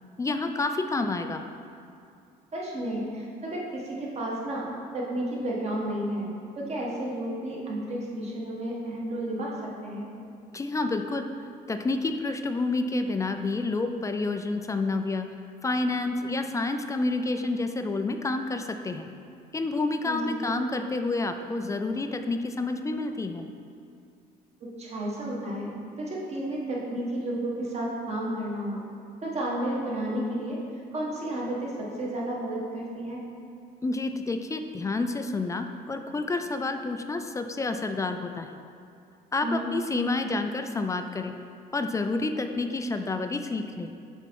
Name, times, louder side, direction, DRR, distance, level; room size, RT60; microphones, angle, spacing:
voice 1, 0.2-1.4 10.5-11.3 11.7-15.3 15.6-19.1 19.5-23.5 33.8-38.6 39.3-41.4 41.7-43.9, left 3 dB, 20° left, 7 dB, 0.3 m, -29 dB
voice 2, 2.5-6.3 6.6-9.5 9.8-10.1 20.0-20.5 24.8-28.8 29.2-30.6 30.9-31.7 32.0-33.2 39.4-39.7, right 1 dB, 40° right, -4 dB, 1.5 m, -32 dB
6.8 x 4.1 x 4.6 m, 2.4 s
cardioid pair, 110°, 17 cm